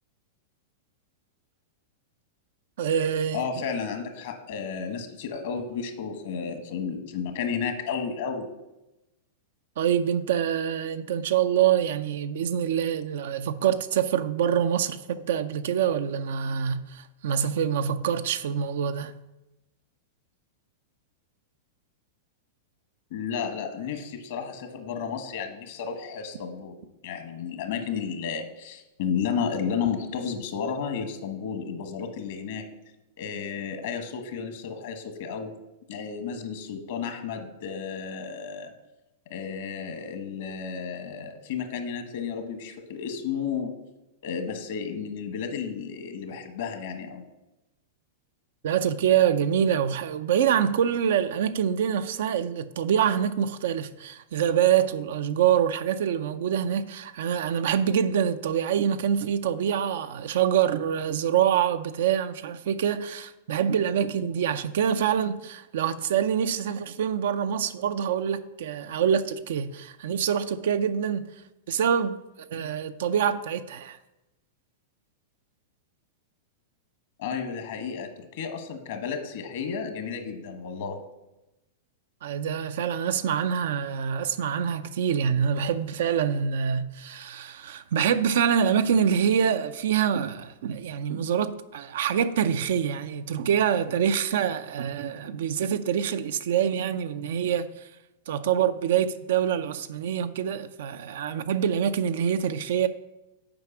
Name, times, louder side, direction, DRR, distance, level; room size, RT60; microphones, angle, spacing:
voice 1, 2.8-3.4 9.8-19.2 48.6-71.3 71.7-72.2 72.5-74.0 82.2-97.7 98.3-102.9, right 8 dB, 70° right, 0.5 m, -25 dB
voice 2, 3.3-8.5 23.1-26.8 27.0-32.7 33.2-35.5 35.9-38.7 39.3-43.8 44.2-47.2 77.2-81.0, left 6 dB, 65° left, 1.3 m, -32 dB
7.7 x 4.9 x 5.9 m
hypercardioid pair, 110°, 0 cm